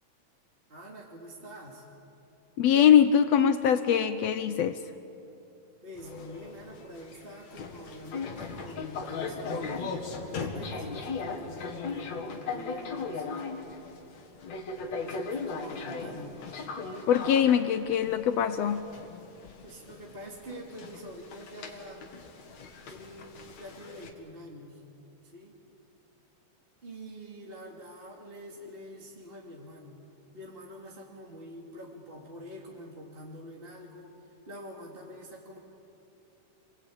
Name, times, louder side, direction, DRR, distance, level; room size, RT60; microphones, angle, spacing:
voice 1, 0.7-1.9 5.8-10.0 10.3-13.7 15.0-16.4 19.6-22.1 22.9-24.8 25.2-25.6 26.8-30.0 30.3-35.6, equal, 20° right, -2 dB, 2.2 m, -45 dB
voice 2, 2.6-4.8 17.1-18.8, left 9 dB, 80° left, 10 dB, 1.5 m, -22 dB
sound 1, 6.0-24.1, left 4 dB, 60° left, 3.1 m, -38 dB
29.5 x 22.0 x 8.7 m, 2.8 s
omnidirectional pair, 3.8 m